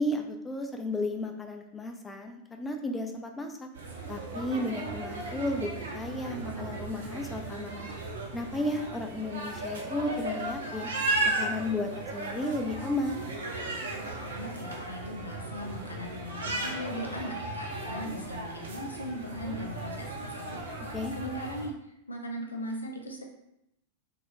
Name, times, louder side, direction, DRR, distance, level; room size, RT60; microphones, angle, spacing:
voice 1, 0.0-3.7 4.1-7.9 8.3-10.9 11.4-13.2 20.9-21.1, left 1 dB, 10° left, 4 dB, 0.3 m, -33 dB
sound 1, 3.8-21.7, right 2 dB, 65° right, 0.4 m, -36 dB
voice 2, 14.2-23.2, equal, 80° left, 1 dB, 0.4 m, -39 dB
2.2 x 2.1 x 3.0 m, 0.80 s
figure-of-eight pair, 90°, 0 cm